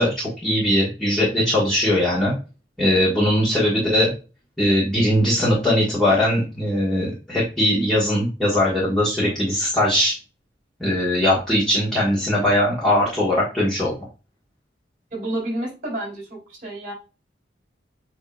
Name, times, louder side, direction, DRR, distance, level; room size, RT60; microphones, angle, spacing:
voice 1, 0.0-2.3 2.8-4.1 4.6-10.1 10.8-13.9, left 1 dB, 5° left, -8 dB, 1.3 m, -20 dB
voice 2, 15.1-16.9, right 1 dB, 45° right, -2 dB, 2.6 m, -30 dB
7.9 x 2.8 x 2.3 m, 0.32 s
head